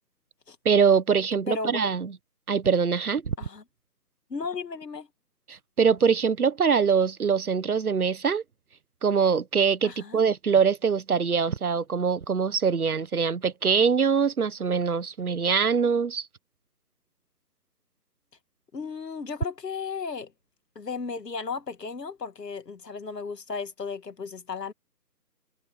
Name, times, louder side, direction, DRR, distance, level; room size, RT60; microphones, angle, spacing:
voice 1, 0.6-2.1 2.5-3.3 5.5-8.4 9.0-16.3, right 6 dB, 60° right, 1.3 m, -23 dB
voice 2, 1.5-1.8 3.4-3.6 4.3-5.1 9.8-10.2 18.7-20.3 20.8-24.7, left 5 dB, 70° left, 2.0 m, -35 dB
figure-of-eight pair, 165°, 50 cm